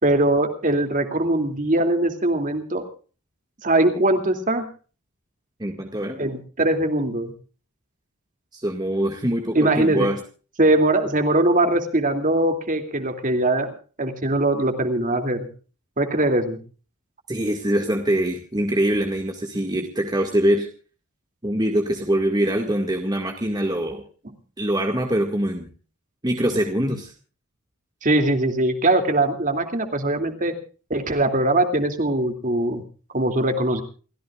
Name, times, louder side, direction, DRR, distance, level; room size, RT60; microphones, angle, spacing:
voice 1, 0.0-2.8 3.6-4.7 6.2-7.3 9.5-10.1 10.6-13.7 14.0-15.5 16.0-16.6 28.0-30.5 30.9-32.8 33.1-33.8, right 1 dB, 35° right, 6 dB, 2.7 m, -21 dB
voice 2, 5.6-6.2 8.5-10.2 17.3-20.7 21.4-24.0 24.6-25.7 26.2-27.1, right 1 dB, 20° right, 2 dB, 2.0 m, -23 dB
28.5 x 15.5 x 2.5 m, 0.39 s
head